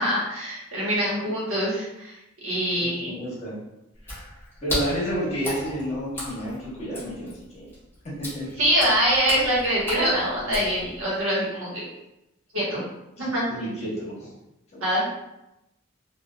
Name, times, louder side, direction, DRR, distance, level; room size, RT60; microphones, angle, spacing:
voice 1, 0.0-2.2 2.4-3.1 8.6-11.8 12.5-12.8 13.2-13.4 14.8-15.0, equal, 75° right, -7 dB, 1.3 m, -24 dB
voice 2, 2.7-3.6 4.0-4.2 4.6-7.6 8.2-8.7 13.2-14.2 14.7-14.8, equal, 35° left, -8 dB, 1.3 m, -31 dB
Water / Splash splatter, 4.0-11.2, left 1 dB, 10° left, 1.0 m, -36 dB
3.2 x 2.6 x 2.3 m, 0.89 s
head